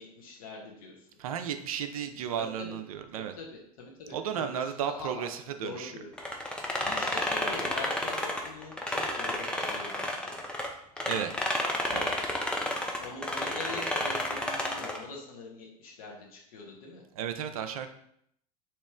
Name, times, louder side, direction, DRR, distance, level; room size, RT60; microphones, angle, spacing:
voice 1, 0.0-1.1 2.4-2.8 3.4-6.1 6.8-10.4 12.7-17.0, left 3 dB, 60° left, -1 dB, 1.0 m, -43 dB
voice 2, 1.2-3.3 4.1-5.9 11.1-11.5 11.9-12.1 17.2-17.9, right 8 dB, 65° right, 8 dB, 0.4 m, -34 dB
sound 1, 6.2-10.7 11.0-15.0, left 1 dB, 5° left, 0.5 m, -31 dB
3.0 x 2.8 x 3.5 m, 0.73 s
figure-of-eight pair, 80°, 20 cm